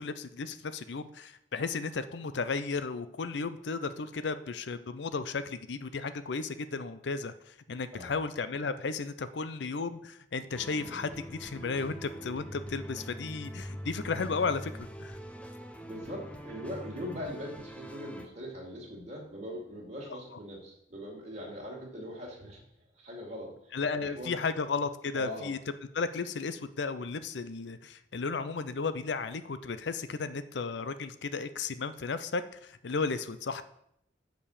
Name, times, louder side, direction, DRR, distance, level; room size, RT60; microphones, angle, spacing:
voice 1, 0.0-15.2 20.1-20.2 23.7-25.6 25.9-33.6, left 4 dB, 75° left, 12 dB, 0.5 m, -34 dB
sound 1, 10.5-18.3, equal, 5° left, 0.6 m, -43 dB
voice 2, 15.8-22.6 22.9-23.7 24.0-24.4 25.1-25.5, equal, 40° right, -2 dB, 2.4 m, -41 dB
7.4 x 5.3 x 6.5 m, 0.75 s
head